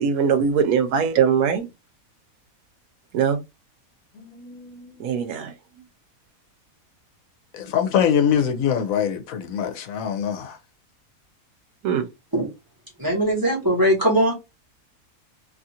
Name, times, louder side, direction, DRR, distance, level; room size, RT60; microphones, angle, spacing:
voice 1, 0.0-1.7 3.1-3.4 5.0-5.5 11.8-12.1, right 7 dB, 75° right, 1.0 m, -21 dB
voice 2, 4.2-5.1 7.5-10.6, left 8 dB, 75° left, 1.1 m, -24 dB
voice 3, 13.0-14.3, right 1 dB, 15° right, 1.0 m, -20 dB
2.8 x 2.4 x 2.7 m
omnidirectional pair, 1.5 m